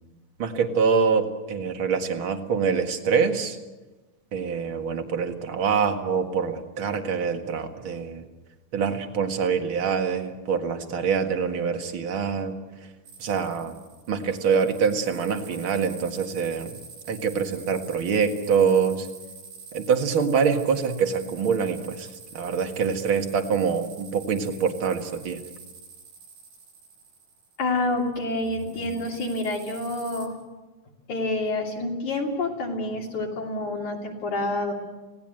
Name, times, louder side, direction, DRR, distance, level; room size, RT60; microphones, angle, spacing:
voice 1, 0.4-3.6 4.3-8.2 8.7-12.5 13.2-13.7 14.1-16.8 17.1-19.1 19.7-22.1 22.3-25.4, right 6 dB, 45° right, 5 dB, 2.3 m, -25 dB
sound 1, 13.1-28.0 28.4-30.3, right 5 dB, 85° right, 9.1 m, -46 dB
voice 2, 27.6-30.3 31.1-34.7, left 2 dB, 65° left, -2 dB, 4.4 m, -28 dB
28.5 x 18.0 x 7.8 m, 1.2 s
omnidirectional pair, 3.7 m